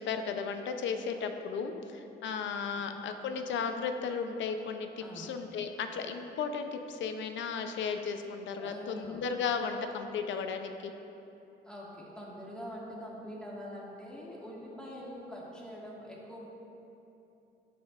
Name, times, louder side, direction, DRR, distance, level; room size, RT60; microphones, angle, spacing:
voice 1, 0.0-10.9, left 5 dB, 70° left, 7 dB, 0.6 m, -35 dB
voice 2, 5.0-5.3 8.6-9.3 11.7-16.4, equal, 5° left, -5 dB, 1.7 m, -44 dB
10.5 x 6.1 x 2.5 m, 2.8 s
cardioid pair, 90°, 20 cm